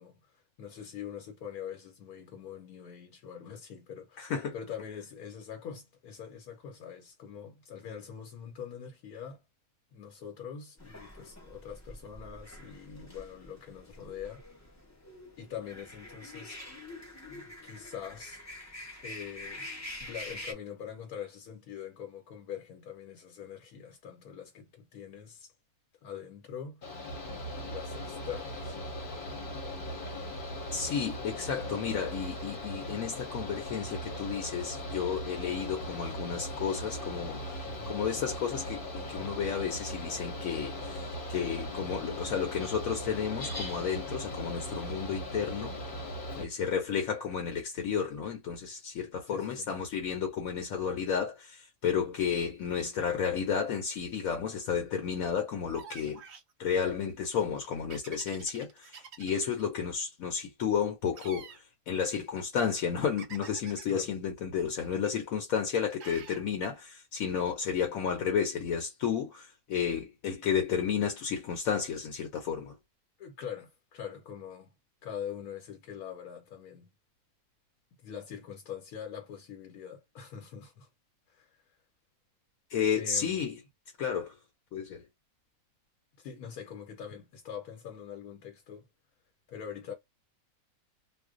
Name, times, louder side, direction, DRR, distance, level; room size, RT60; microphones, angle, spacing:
voice 1, 0.0-9.4 9.9-14.7 15.4-16.6 17.3-18.7 19.0-19.7 20.0-25.5 26.0-26.8 27.5-28.8 37.6-37.9 46.3-46.5 49.3-49.7 63.9-64.1 73.2-74.7 75.0-76.9 78.0-80.9 81.3-81.6 82.9-83.4 86.2-88.9 89.5-89.9, left 8 dB, 90° left, 1.2 m, -43 dB
voice 2, 4.2-4.5 30.7-37.6 37.9-41.0 41.3-45.8 46.4-56.2 56.6-58.9 59.2-61.5 61.9-72.8 82.7-83.5 84.0-84.3 84.7-85.0, left 7 dB, 70° left, 1.0 m, -32 dB
sound 1, 10.8-20.5, left 1 dB, 20° left, 0.4 m, -46 dB
Mechanical fan, 26.8-46.4, left 1 dB, 45° left, 0.9 m, -39 dB
sound 2, 55.7-56.5 57.9-59.6 61.1-61.6 63.2-64.0 66.0-66.4, right 6 dB, 55° right, 0.8 m, -48 dB
2.5 x 2.2 x 3.6 m
omnidirectional pair, 1.5 m